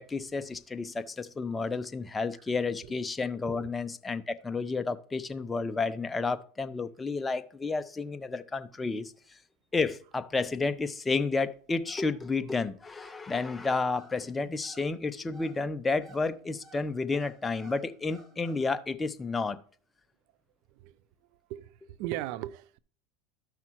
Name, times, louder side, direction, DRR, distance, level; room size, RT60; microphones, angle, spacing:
voice 1, 0.0-9.1 9.7-19.6, left 4 dB, 15° left, 0.6 m, -31 dB
sound 1, 10.9-18.7, right 1 dB, 30° right, 1.8 m, -57 dB
voice 2, 21.5-22.8, right 14 dB, 65° right, 0.5 m, -37 dB
13.5 x 5.8 x 3.0 m
supercardioid pair, 110°, 0 cm